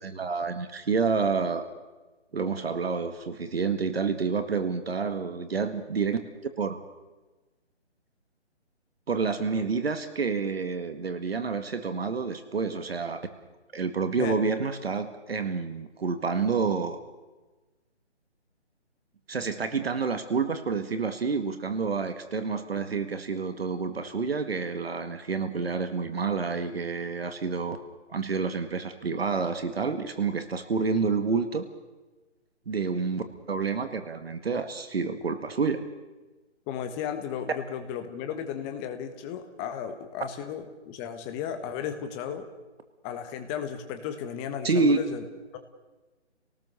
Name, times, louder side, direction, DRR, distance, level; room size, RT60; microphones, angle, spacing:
voice 1, 0.0-1.7 2.3-6.2 6.6-6.8 9.1-13.3 13.7-17.0 19.3-27.8 28.1-31.7 32.7-35.8 44.6-45.0, right 5 dB, 60° right, 9 dB, 1.9 m, -28 dB
voice 2, 36.7-42.5 43.0-45.2 45.5-45.6, left 8 dB, 15° left, 7 dB, 1.4 m, -34 dB
29.0 x 18.5 x 6.8 m, 1.2 s
figure-of-eight pair, 150°, 35 cm